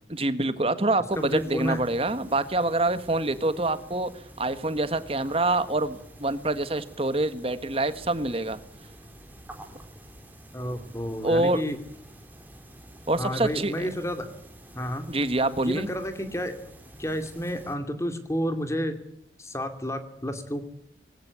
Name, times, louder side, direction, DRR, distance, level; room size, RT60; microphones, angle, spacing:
voice 1, 0.1-4.1 4.4-8.6 11.2-11.6 13.1-13.9 15.1-15.9, right 2 dB, 30° right, 12 dB, 1.5 m, -26 dB
voice 2, 1.1-1.8 10.5-11.8 13.2-14.3 14.7-15.1 15.6-16.5 17.0-19.0 19.4-20.6, equal, 15° left, 8 dB, 2.5 m, -30 dB
sound 1, 1.1-17.7, right 1 dB, 10° right, 3.4 m, -49 dB
20.5 x 17.0 x 9.8 m, 0.72 s
head